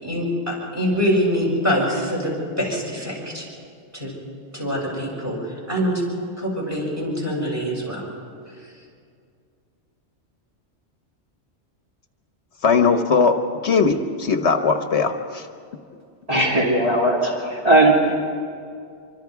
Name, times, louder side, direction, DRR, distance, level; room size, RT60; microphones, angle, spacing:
voice 1, 0.0-3.5 3.9-4.1 4.5-6.0 6.4-8.1, equal, 15° right, -3 dB, 7.0 m, -24 dB
voice 2, 12.6-13.4 13.6-15.5, left 5 dB, 75° left, 6 dB, 1.4 m, -19 dB
voice 3, 16.3-18.1, right 1 dB, 35° right, -5 dB, 2.9 m, -18 dB
26.0 x 24.5 x 4.7 m, 2.3 s
omnidirectional pair, 1.2 m